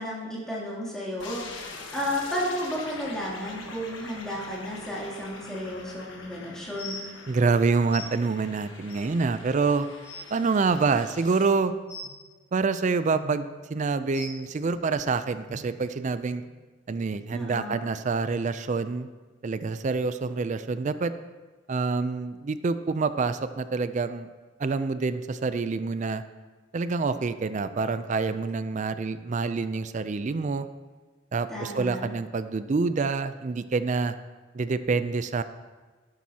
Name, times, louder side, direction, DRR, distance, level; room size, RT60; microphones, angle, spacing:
voice 1, 0.0-7.0 17.3-17.8 31.5-32.1, equal, 5° left, -7 dB, 2.8 m, -33 dB
sound 1, 1.2-11.5, left 3 dB, 75° left, 1.3 m, -44 dB
sound 2, 6.7-7.0 7.9-8.0 8.9-9.0 9.6-9.7 9.9-10.2 11.9-12.1 13.1-13.3 14.1-14.3 15.5-15.6 16.3-16.4 17.1-17.2, left 2 dB, 50° left, 3.5 m, -39 dB
voice 2, 7.3-9.9 10.3-11.7 12.5-13.4 13.7-16.4 16.9-19.1 19.4-21.1 21.7-24.3 24.6-26.2 26.7-30.7 31.3-34.1 34.5-35.4, right 4 dB, 40° right, 12 dB, 0.4 m, -27 dB
12.0 x 11.5 x 2.8 m, 1.3 s
head